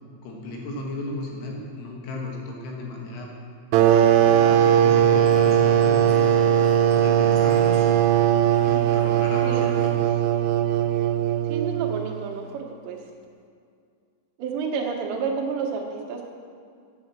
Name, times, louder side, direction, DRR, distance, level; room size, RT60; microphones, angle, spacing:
voice 1, 0.2-3.3 4.4-6.4 6.9-10.2, left 2 dB, 75° left, -1 dB, 3.6 m, -35 dB
sound 1, 3.7-12.1, right 10 dB, 90° right, 3.2 m, -19 dB
sound 2, 3.8-9.9, right 2 dB, 55° right, 1.9 m, -40 dB
voice 2, 9.4-9.8 11.5-13.0 14.4-16.3, right 5 dB, 75° right, 0 dB, 3.1 m, -30 dB
9.0 x 7.0 x 7.2 m, 2.3 s
omnidirectional pair, 5.6 m